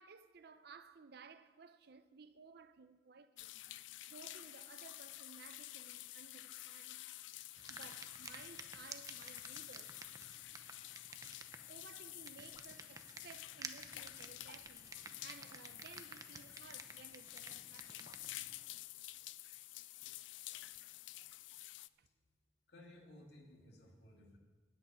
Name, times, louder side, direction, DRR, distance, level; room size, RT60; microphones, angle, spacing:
voice 1, 0.0-3.6 4.1-7.0 7.7-10.0 11.7-18.1 22.0-22.1, right 5 dB, 60° right, 0.6 m, -58 dB
sound 1, 3.4-21.9, left 16 dB, 85° left, 0.4 m, -50 dB
sound 2, 7.6-18.7, right 4 dB, 20° right, 0.7 m, -54 dB
voice 2, 22.7-24.4, left 1 dB, 65° left, 2.3 m, -58 dB
10.5 x 8.1 x 9.4 m
head